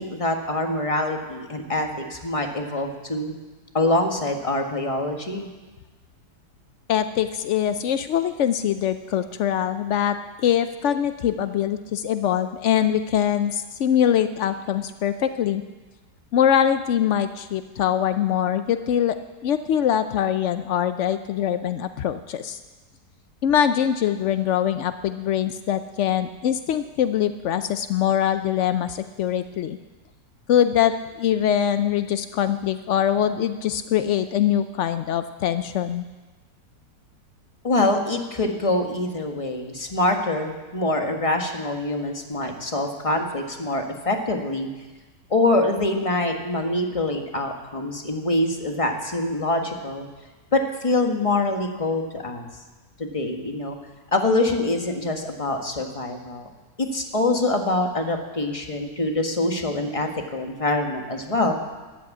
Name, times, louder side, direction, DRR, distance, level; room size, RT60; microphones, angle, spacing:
voice 1, 0.0-3.3 3.7-5.5 37.6-44.7 45.3-50.1 50.5-52.5 53.0-53.8 54.1-56.5 56.8-61.5, left 2 dB, 20° left, 3 dB, 1.4 m, -25 dB
voice 2, 6.9-15.6 16.3-19.2 19.4-22.6 23.4-29.8 30.5-36.0, left 9 dB, 85° left, 10 dB, 0.6 m, -23 dB
12.5 x 11.0 x 8.4 m, 1.2 s
omnidirectional pair, 1.9 m